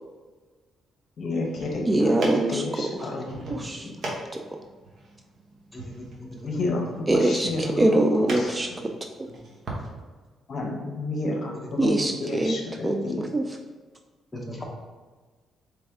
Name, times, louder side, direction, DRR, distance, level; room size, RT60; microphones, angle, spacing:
voice 1, 1.2-2.2 2.5-3.9 6.4-8.0 8.4-8.5 10.5-11.9 12.2-13.2, left 2 dB, 55° left, 1 dB, 0.9 m, -31 dB
sound 1, 1.3-9.9, right 1 dB, 55° right, 1.1 m, -39 dB
voice 2, 1.8-3.1 3.5-3.9 4.3-4.4 7.1-8.9 11.8-13.6, right 1 dB, 20° right, 4 dB, 0.3 m, -24 dB
voice 3, 5.7-6.5 9.3-9.4 14.3-14.6, left 1 dB, 15° left, -1 dB, 1.0 m, -39 dB
4.0 x 3.4 x 3.6 m, 1.4 s
cardioid pair, 90°, 0 cm